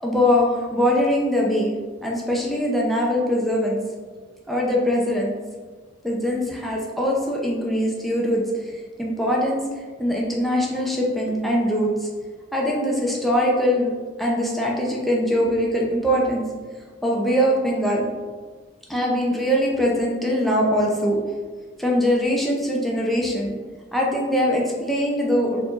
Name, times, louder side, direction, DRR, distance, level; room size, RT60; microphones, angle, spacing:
voice 1, 0.0-1.7 2.0-3.8 4.5-5.3 6.0-8.4 9.0-9.6 10.0-12.1 12.5-13.9 14.2-16.4 17.0-18.1 18.9-21.2 21.8-23.5 23.9-25.6, equal, ahead, -3 dB, 0.5 m, -22 dB
4.2 x 2.7 x 2.9 m, 1.4 s
head